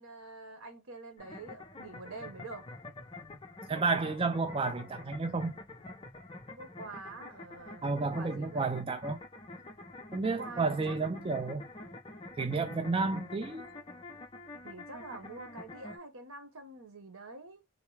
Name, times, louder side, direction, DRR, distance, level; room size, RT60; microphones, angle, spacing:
voice 1, 0.0-2.7 6.5-8.8 10.4-11.2 14.6-17.6, right 3 dB, 90° right, 1.1 m, -46 dB
sound 1, 1.2-16.0, left 2 dB, 25° left, 0.6 m, -47 dB
voice 2, 3.7-5.6 7.8-9.2 10.1-11.7 12.4-13.6, right 3 dB, 25° right, 0.3 m, -31 dB
3.6 x 2.2 x 3.2 m
head